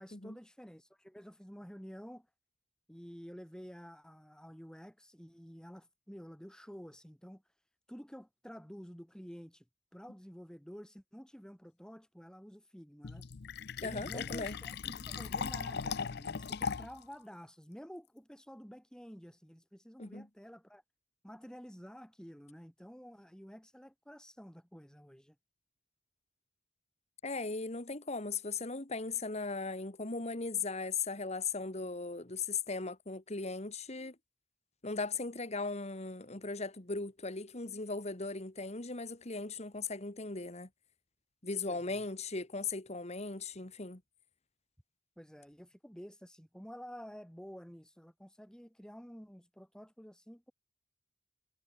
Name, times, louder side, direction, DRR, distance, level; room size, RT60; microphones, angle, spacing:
voice 1, 0.0-2.3 2.9-7.4 7.9-9.7 9.9-13.3 13.8-20.8 21.2-25.4 41.7-42.0 45.2-50.5, equal, 5° left, 5.2 m, -50 dB
Fill (with liquid), 13.0-17.0, left 6 dB, 55° left, 0.6 m, -38 dB
voice 2, 13.8-14.6 20.0-20.3 27.2-34.2 34.8-40.7 41.4-44.0, left 4 dB, 35° left, 1.9 m, -38 dB
head